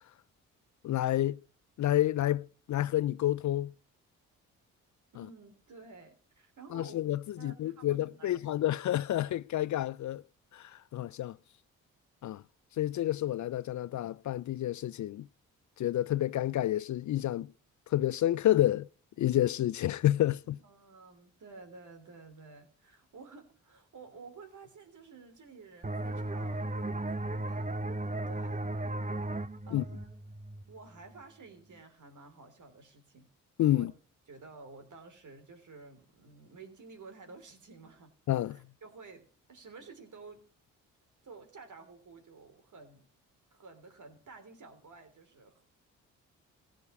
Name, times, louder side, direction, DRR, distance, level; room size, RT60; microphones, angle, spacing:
voice 1, 0.8-1.4 1.8-3.7 6.7-10.2 10.5-11.4 12.2-12.4 12.8-15.3 15.8-17.5 17.9-18.9 19.2-20.6 29.7-29.8 33.6-33.9 38.3-38.6, left 13 dB, 55° left, 0.5 m, -29 dB
voice 2, 5.1-7.0 7.4-8.7 20.6-27.8 28.3-28.6 29.7-30.1 30.7-33.3 33.7-33.9 34.3-38.1 38.5-40.4 41.2-43.1 43.5-45.6, right 4 dB, 55° right, 3.3 m, -52 dB
sound 1, 25.8-31.2, right 1 dB, 20° right, 1.0 m, -36 dB
15.5 x 5.2 x 8.1 m
supercardioid pair, 50°, 36 cm